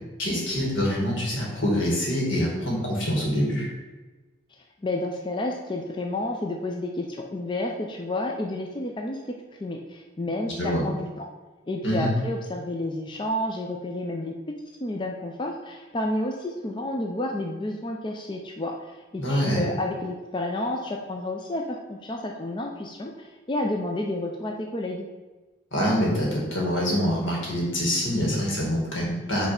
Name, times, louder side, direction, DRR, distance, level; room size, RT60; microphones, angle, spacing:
voice 1, 0.2-3.7 10.6-10.8 11.8-12.1 19.2-19.7 25.7-29.5, equal, 80° left, -3 dB, 2.1 m, -25 dB
voice 2, 4.8-9.4 9.6-11.3 11.7-25.1, left 1 dB, 25° left, 1 dB, 0.4 m, -30 dB
5.6 x 3.3 x 5.7 m, 1.2 s
head